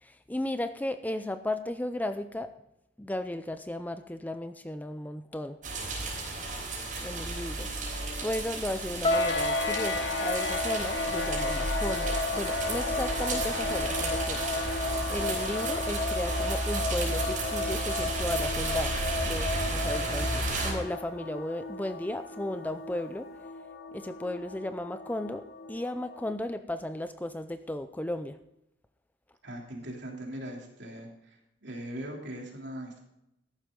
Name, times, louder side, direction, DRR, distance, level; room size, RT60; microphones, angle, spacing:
voice 1, 0.0-2.5 3.0-5.6 7.0-14.4 15.1-18.9 19.2-23.3 23.9-28.4, left 1 dB, 10° left, 10 dB, 0.5 m, -35 dB
sound 1, 5.6-20.7, right 2 dB, 45° right, 5.1 m, -33 dB
sound 2, 9.0-21.2, left 2 dB, 35° left, 1.6 m, -34 dB
sound 3, 9.1-26.3, left 3 dB, 65° left, 1.4 m, -36 dB
voice 2, 29.4-33.0, right 1 dB, 65° right, 0 dB, 3.2 m, -40 dB
14.5 x 11.5 x 3.8 m, 0.84 s
head